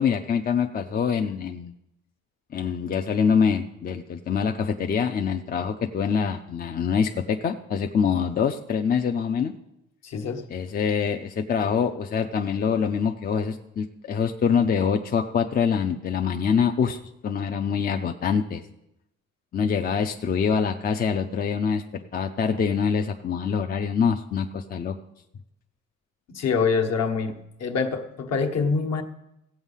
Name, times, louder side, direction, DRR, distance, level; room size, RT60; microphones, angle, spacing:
voice 1, 0.0-1.7 2.5-9.5 10.5-18.6 19.5-21.8 22.1-24.9, left 6 dB, 30° left, 5 dB, 0.5 m, -25 dB
voice 2, 10.0-10.5 26.3-29.0, left 5 dB, 60° left, 4 dB, 1.3 m, -25 dB
15.5 x 8.1 x 5.5 m, 0.85 s
cardioid pair, 170°, 30 cm